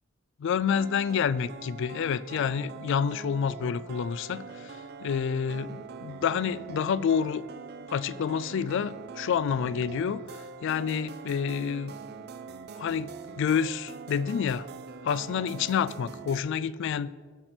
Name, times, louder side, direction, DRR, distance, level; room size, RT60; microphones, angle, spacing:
voice 1, 0.4-4.8 5.0-7.4 7.9-10.2 10.6-11.9 12.8-13.1 13.4-14.7 15.0-17.1, left 7 dB, 60° left, 0.3 m, -28 dB
sound 1, 0.7-16.4, right 5 dB, 50° right, 0.5 m, -43 dB
15.5 x 5.9 x 4.4 m
head